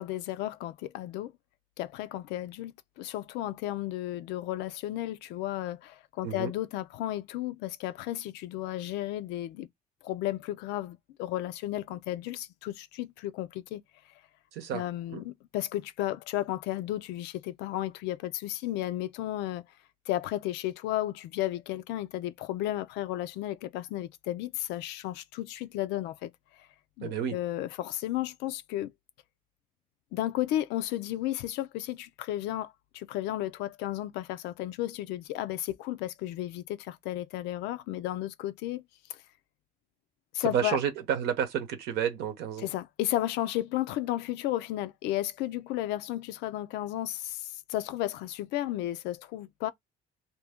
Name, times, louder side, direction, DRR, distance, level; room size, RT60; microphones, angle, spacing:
voice 1, 0.0-1.3 1.8-9.7 10.0-13.8 14.7-19.6 20.1-26.3 27.0-28.9 30.1-38.8 39.1-39.2 40.3-40.8 42.6-49.7, left 14 dB, 90° left, 0.4 m, -33 dB
voice 2, 14.5-14.8 15.1-15.2 27.0-27.4 40.4-42.7, right 9 dB, 80° right, 0.9 m, -30 dB
2.7 x 2.6 x 3.4 m
cardioid pair, 110°, 17 cm